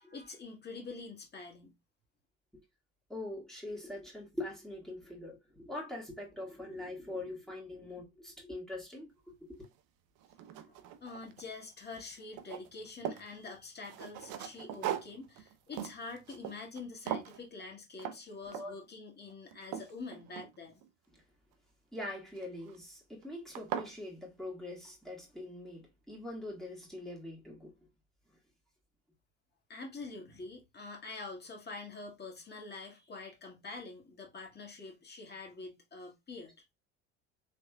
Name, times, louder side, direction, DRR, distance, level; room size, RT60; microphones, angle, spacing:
voice 1, 0.1-1.7 10.7-20.8 29.7-36.5, left 3 dB, 30° left, 1.8 m, -46 dB
voice 2, 3.1-9.5 18.5-18.8 21.9-27.7, left 1 dB, ahead, 2.0 m, -43 dB
sound 1, 9.6-9.7 10.2-11.6 11.9-13.3 13.8-16.8 17.1-17.4 18.0-18.2 18.5-18.9 19.3-20.9 22.4-22.8 23.2-23.3 23.5-23.9, right 10 dB, 65° right, 0.6 m, -40 dB
3.4 x 3.3 x 2.2 m
hypercardioid pair, 70°, 33 cm